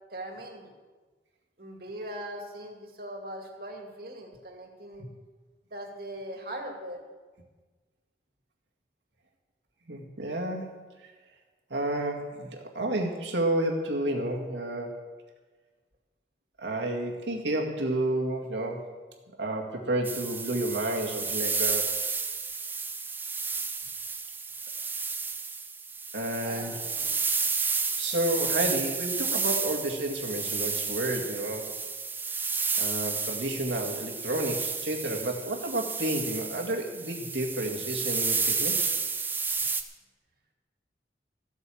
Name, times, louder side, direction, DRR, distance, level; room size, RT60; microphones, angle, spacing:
voice 1, 0.1-0.7 1.6-5.1 5.7-7.0 26.3-27.1, right 1 dB, 55° right, 2 dB, 2.3 m, -40 dB
voice 2, 9.9-10.8 11.7-15.0 16.6-18.9 19.4-21.9 26.1-26.8 28.0-31.8 32.8-38.9, right 1 dB, 80° right, 1 dB, 2.1 m, -31 dB
sound 1, 20.0-39.8, right 4 dB, 10° right, 0.6 m, -31 dB
14.0 x 8.3 x 7.1 m, 1.3 s
head